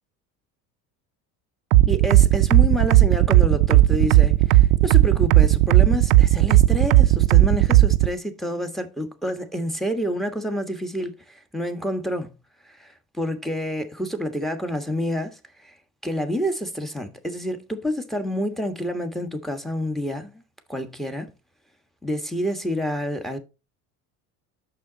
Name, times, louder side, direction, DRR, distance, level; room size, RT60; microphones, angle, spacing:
sound 1, 1.7-8.1, right 15 dB, 70° right, 0.7 m, -15 dB
voice 1, 1.9-12.3 12.6-15.8 16.0-20.4 20.7-21.3 22.0-23.4, equal, ahead, 1.5 m, -28 dB
8.4 x 6.7 x 4.1 m
hypercardioid pair, 75°, 45 cm